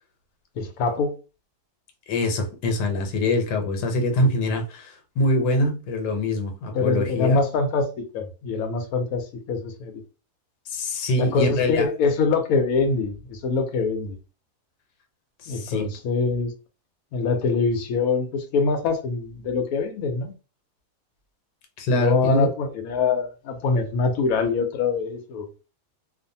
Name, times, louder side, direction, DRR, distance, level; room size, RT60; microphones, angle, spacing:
voice 1, 0.6-1.2 6.7-10.0 11.2-14.2 15.5-16.5 17.1-20.3 21.9-25.5, left 4 dB, 70° left, 1.0 m, -24 dB
voice 2, 2.1-7.4 10.7-11.9 15.4-15.9 21.8-22.5, left 1 dB, 85° left, 1.3 m, -24 dB
2.5 x 2.4 x 2.6 m
omnidirectional pair, 1.7 m